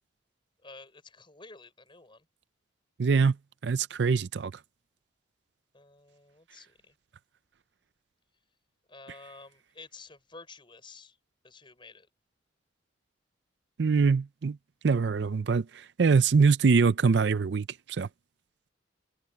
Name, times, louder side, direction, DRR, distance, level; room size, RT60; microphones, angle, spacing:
voice 1, 0.6-2.3 5.7-7.0 8.9-11.2 11.4-12.1, left 3 dB, 25° left, 5.7 m, -51 dB
voice 2, 3.0-3.4 3.6-4.5 13.8-14.6 14.8-18.1, right 5 dB, 60° right, 0.5 m, -24 dB
open air
head